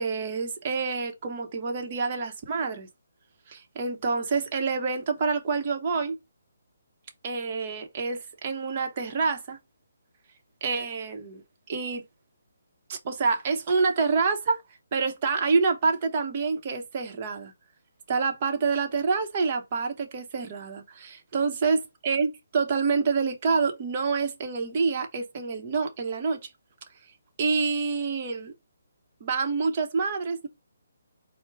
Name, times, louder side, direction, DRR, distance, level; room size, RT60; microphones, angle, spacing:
voice 1, 0.0-2.9 3.5-6.2 7.2-9.6 10.6-11.4 11.7-12.0 12.9-14.6 14.9-17.5 18.1-26.5 27.4-28.5 29.2-30.5, right 4 dB, 35° right, 0.9 m, -27 dB
4.4 x 2.1 x 4.6 m
hypercardioid pair, 160°, 0 cm